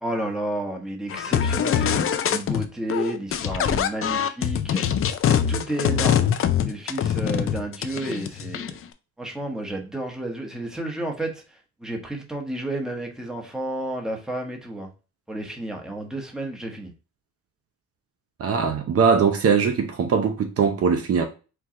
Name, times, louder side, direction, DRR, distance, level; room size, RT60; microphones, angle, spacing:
voice 1, 0.0-4.8 5.2-8.8 9.2-14.9 15.3-16.9, right 1 dB, ahead, 1.1 m, -31 dB
sound 1, 1.1-2.6 2.9-8.8, left 9 dB, 45° left, 0.5 m, -23 dB
voice 2, 18.4-21.2, right 6 dB, 50° right, 0.7 m, -21 dB
4.7 x 2.3 x 3.6 m
cardioid pair, 90°, 30 cm